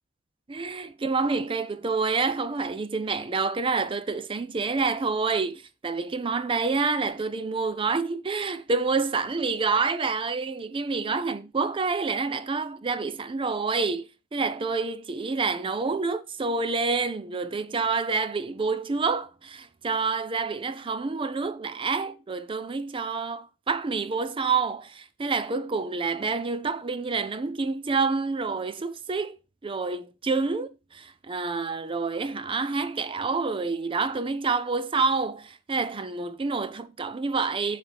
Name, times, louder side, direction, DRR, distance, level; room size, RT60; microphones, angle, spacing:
voice 1, 0.5-29.4 29.6-37.8, right 4 dB, 25° right, 0.5 m, -28 dB
6.9 x 3.4 x 5.7 m
head